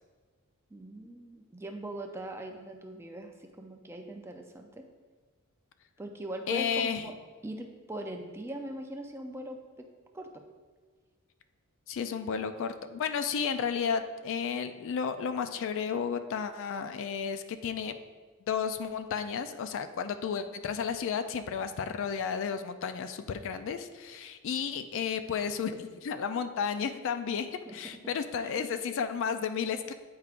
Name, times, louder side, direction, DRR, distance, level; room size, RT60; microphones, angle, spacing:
voice 1, 0.7-4.9 6.0-7.1 7.4-9.9 10.1-10.4 27.7-27.8 28.4-28.7, right 1 dB, 10° right, 3 dB, 0.4 m, -41 dB
voice 2, 6.5-7.1 11.9-18.0 18.5-29.9, left 6 dB, 60° left, 9 dB, 0.3 m, -32 dB
8.4 x 4.7 x 2.5 m, 1.4 s
head